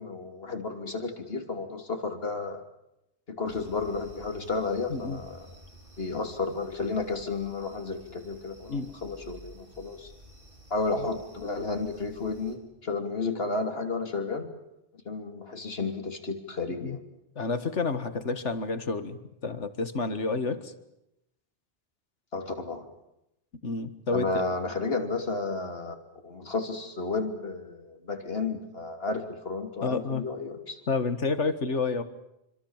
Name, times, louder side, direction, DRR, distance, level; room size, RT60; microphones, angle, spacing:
voice 1, 0.0-2.6 3.3-5.4 6.0-10.1 10.7-14.5 15.0-17.0 22.3-22.8 24.1-25.9 26.2-30.8, left 3 dB, 60° left, 5 dB, 3.3 m, -32 dB
sound 1, 3.5-12.6, equal, 50° right, 5.1 m, -52 dB
voice 2, 4.9-5.2 8.7-8.9 16.7-17.0 17.4-20.7 23.6-24.4 29.8-30.2 30.9-32.0, left 4 dB, 85° left, 11 dB, 2.1 m, -30 dB
27.0 x 25.5 x 7.4 m, 0.84 s
omnidirectional pair, 1.2 m